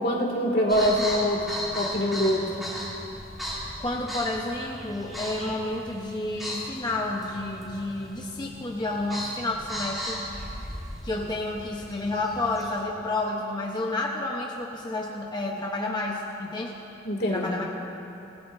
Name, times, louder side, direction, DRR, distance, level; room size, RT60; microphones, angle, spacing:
voice 1, 0.0-1.5 1.7-2.5 17.0-17.5, equal, 60° left, 0 dB, 2.3 m, -24 dB
sound 1, 0.7-12.8, equal, ahead, 2.9 m, -37 dB
voice 2, 3.8-10.2 11.0-16.7 17.3-17.6, left 2 dB, 25° left, -2 dB, 0.9 m, -30 dB
27.0 x 16.0 x 2.7 m, 2.8 s
head